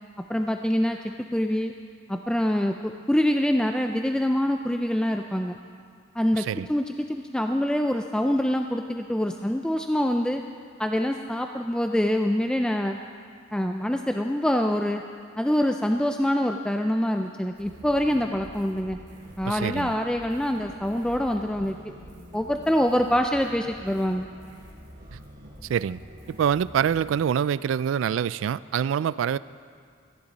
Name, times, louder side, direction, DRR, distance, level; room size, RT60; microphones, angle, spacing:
voice 1, 0.3-1.7 2.1-5.6 6.2-10.4 10.8-13.0 13.5-15.0 15.4-19.0 19.4-21.8 22.3-24.3, equal, 5° left, 5 dB, 0.3 m, -25 dB
sound 1, 17.5-27.2, equal, 45° right, 4.3 m, -46 dB
voice 2, 19.4-19.9 25.1-25.2 25.7-26.0 26.4-29.4, right 8 dB, 85° right, 19 dB, 0.3 m, -25 dB
17.5 x 14.5 x 4.0 m, 2.3 s
head